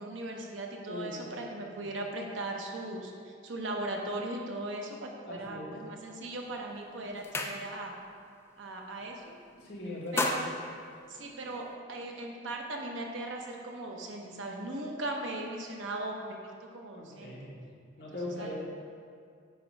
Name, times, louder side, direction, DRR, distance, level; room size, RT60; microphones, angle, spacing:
voice 1, 0.0-7.9 8.6-9.4 10.1-10.4 11.1-17.4 18.4-18.6, right 2 dB, 85° right, 1 dB, 0.8 m, -38 dB
voice 2, 0.9-1.2 1.6-1.8 5.2-5.7 9.6-10.3 16.9-17.6 18.0-18.6, left 1 dB, 60° left, -5 dB, 1.4 m, -40 dB
sound 1, 6.3-6.6 6.9-8.1 8.4-8.7 9.0-9.5 9.9-11.7, left 2 dB, 15° left, 0.3 m, -35 dB
8.1 x 3.2 x 5.1 m, 2.2 s
head